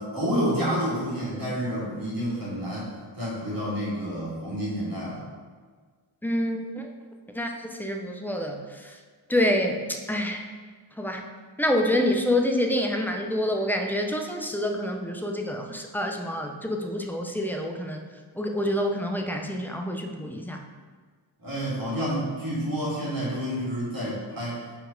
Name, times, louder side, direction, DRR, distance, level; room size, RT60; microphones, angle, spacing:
voice 1, 0.0-5.2 21.4-24.6, equal, 45° right, -7 dB, 1.7 m, -29 dB
voice 2, 6.2-6.9 7.3-9.0 9.3-10.4 11.0-11.2 11.6-18.0 18.4-20.6, left 1 dB, 5° left, 2 dB, 0.4 m, -27 dB
4.6 x 4.1 x 5.0 m, 1.5 s
wide cardioid pair, 145°, 47 cm